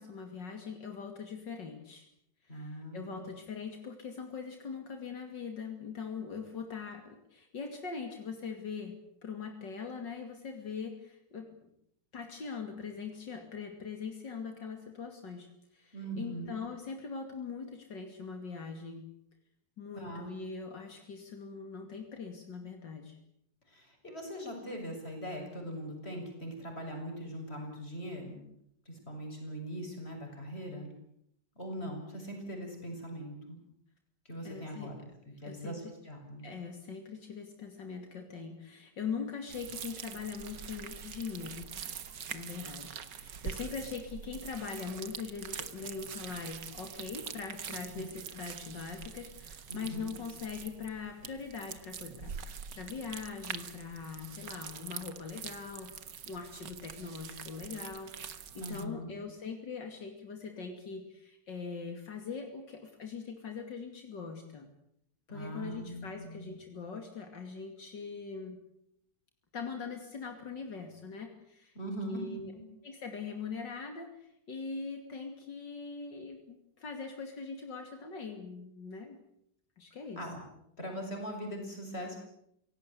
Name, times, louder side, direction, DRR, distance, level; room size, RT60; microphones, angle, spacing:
voice 1, 0.0-2.1 2.4-11.5 12.1-15.5 15.7-19.1 19.8-23.2 34.4-34.9 35.4-35.8 36.4-41.7 42.3-55.9 56.3-58.1 58.5-64.7 65.3-68.6 69.5-71.7 72.1-72.5 72.8-79.2 79.8-80.2, left 5 dB, 80° left, 5 dB, 3.2 m, -42 dB
voice 2, 2.5-3.2 15.9-16.5 20.0-20.3 23.7-28.4 28.9-30.9 31.6-33.6 34.3-35.0 35.3-36.5 47.7-48.1 49.7-50.1 58.6-59.2 65.3-66.6 71.8-72.6 80.2-80.4 80.8-82.2, equal, 35° left, 3 dB, 7.0 m, -41 dB
sound 1, 39.5-58.8, right 7 dB, 75° right, 2.0 m, -44 dB
26.5 x 17.5 x 8.3 m, 0.75 s
omnidirectional pair, 1.9 m